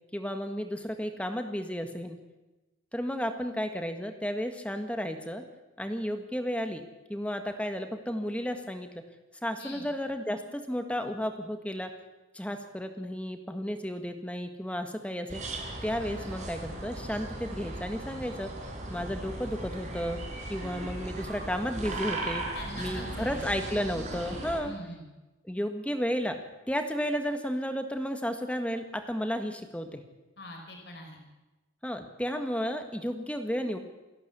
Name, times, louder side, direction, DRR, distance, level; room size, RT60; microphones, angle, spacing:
voice 1, 0.1-2.2 2.9-5.4 5.8-6.8 7.1-9.0 9.4-11.9 12.3-15.4 15.8-18.5 18.9-20.2 20.5-22.4 22.8-24.7 25.4-26.4 26.7-30.0 31.8-33.8, equal, 5° left, 6 dB, 1.7 m, -33 dB
sound 1, 15.3-24.6, right 1 dB, 40° right, 5.4 m, -37 dB
voice 2, 22.5-23.4 24.6-25.1 30.4-31.2, left 1 dB, 60° left, 1 dB, 5.2 m, -43 dB
27.5 x 12.0 x 8.3 m, 1.1 s
head